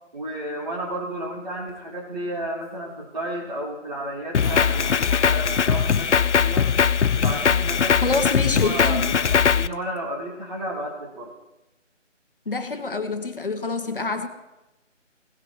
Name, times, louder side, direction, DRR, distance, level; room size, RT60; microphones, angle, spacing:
voice 1, 0.1-6.7 7.1-8.2 8.6-9.2 9.5-11.3, right 1 dB, 35° right, 1.8 m, -32 dB
Fart, 1.7-1.8 4.4-6.7 7.4-7.5 8.7-8.8 9.2-9.3 9.7-10.0, left 3 dB, 25° left, 2.1 m, -39 dB
Drum kit, 4.3-9.7, left 7 dB, 65° left, 0.5 m, -20 dB
voice 2, 8.0-9.1 12.5-14.3, left 3 dB, 45° left, 1.2 m, -26 dB
18.0 x 7.4 x 3.1 m
figure-of-eight pair, 165°, 38 cm